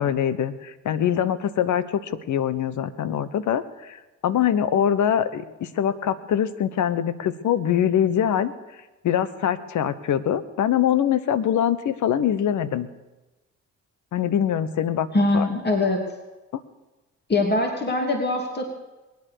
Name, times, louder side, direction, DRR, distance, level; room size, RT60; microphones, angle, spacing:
voice 1, 0.0-8.5 9.0-12.9 14.1-15.1 15.3-15.5 16.5-16.6, left 9 dB, 55° left, 14 dB, 1.2 m, -23 dB
voice 2, 15.1-16.0 17.3-18.6, left 2 dB, 30° left, 2 dB, 3.0 m, -22 dB
22.0 x 9.6 x 6.7 m, 1.1 s
hypercardioid pair, 50°, 35 cm